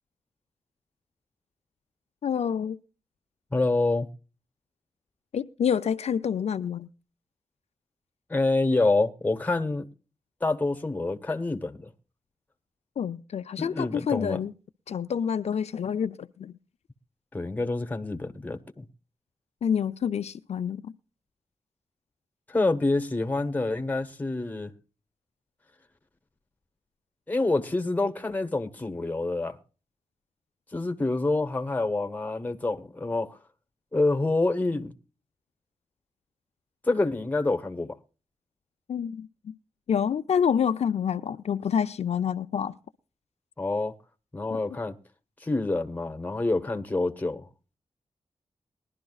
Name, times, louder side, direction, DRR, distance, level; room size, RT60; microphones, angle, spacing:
voice 1, 2.2-2.8 5.3-6.9 13.0-14.5 14.9-16.5 19.6-20.8 38.9-39.5 39.9-42.7 44.5-44.6, left 8 dB, 70° left, 0.5 m, -27 dB
voice 2, 3.5-4.1 8.3-9.9 10.4-11.9 13.6-14.4 17.3-18.9 22.5-24.7 27.3-29.6 30.7-33.4 33.9-34.9 36.8-38.0 43.6-43.9 44.3-45.0 45.4-47.5, left 2 dB, 15° left, 1.0 m, -27 dB
21.0 x 11.5 x 2.3 m
wide cardioid pair, 140°, 11 cm